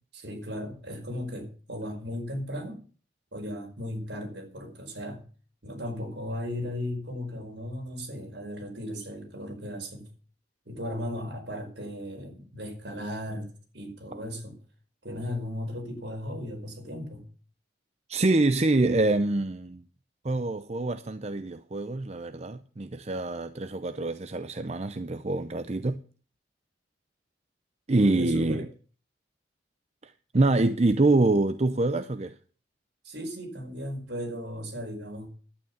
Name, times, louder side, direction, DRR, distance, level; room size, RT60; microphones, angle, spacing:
voice 1, 0.1-2.8 3.3-5.2 5.6-10.1 10.6-14.6 15.0-17.2 28.0-28.6 33.0-35.3, left 1 dB, 65° right, 5.0 m, -36 dB
voice 2, 18.1-19.8 20.2-26.0 27.9-28.7 30.0-32.3, right 2 dB, 35° right, 0.6 m, -25 dB
11.5 x 9.3 x 7.0 m
head